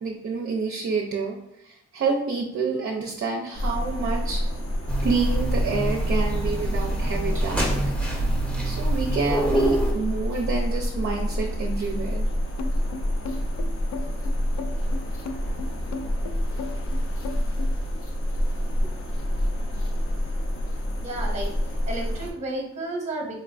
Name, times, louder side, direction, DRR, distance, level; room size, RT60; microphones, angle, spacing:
voice 1, 0.0-4.4 5.0-7.8 8.6-12.3, right 4 dB, 45° right, 1 dB, 0.6 m, -28 dB
sound 1, 3.5-22.3, equal, 45° left, 0.9 m, -27 dB
sound 2, 4.9-9.9, right 1 dB, 5° left, 0.9 m, -27 dB
sound 3, 12.6-17.7, left 4 dB, 70° left, 0.5 m, -35 dB
voice 2, 21.0-21.5 21.9-23.4, right 1 dB, 25° right, 0 dB, 0.9 m, -32 dB
4.3 x 2.2 x 2.5 m, 0.86 s
cardioid pair, 90°, 30 cm